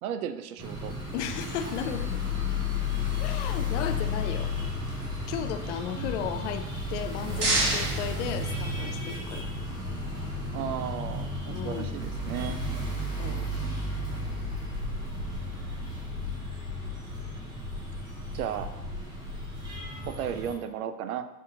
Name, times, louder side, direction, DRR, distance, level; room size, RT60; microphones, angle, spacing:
voice 1, 0.0-0.9 2.9-3.0 5.9-6.1 10.5-12.6 18.3-18.7 20.1-21.3, right 9 dB, 80° right, 10 dB, 0.5 m, -34 dB
sound 1, 0.6-20.5, left 2 dB, 10° right, 0.4 m, -33 dB
voice 2, 1.1-2.2 3.2-4.5 5.3-6.6 6.9-9.5 11.5-12.0 13.2-13.5, left 9 dB, 55° left, 8 dB, 0.5 m, -35 dB
sound 2, 6.9-9.1, right 2 dB, 35° right, 1.3 m, -30 dB
5.5 x 2.6 x 2.7 m, 0.96 s
supercardioid pair, 135°, 43 cm